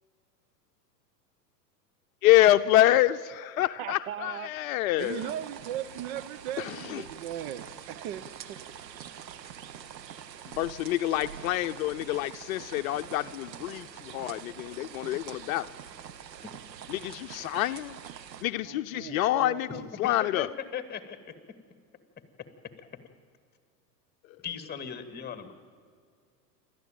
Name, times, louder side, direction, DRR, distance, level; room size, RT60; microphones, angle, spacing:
voice 1, 2.2-5.3 6.6-7.0 10.5-15.7 16.9-18.0 18.4-20.5, left 15 dB, 55° left, 10 dB, 0.7 m, -26 dB
voice 2, 3.6-8.8 9.5-9.9 18.6-19.9, right 11 dB, 50° right, 12 dB, 1.2 m, -39 dB
sound 1, 5.0-18.4, right 9 dB, 85° right, 1.2 m, -45 dB
voice 3, 19.8-21.3 22.8-22.9 24.4-25.5, left 7 dB, 20° left, 10 dB, 2.3 m, -38 dB
28.0 x 13.0 x 9.2 m, 2.1 s
hypercardioid pair, 100°, 49 cm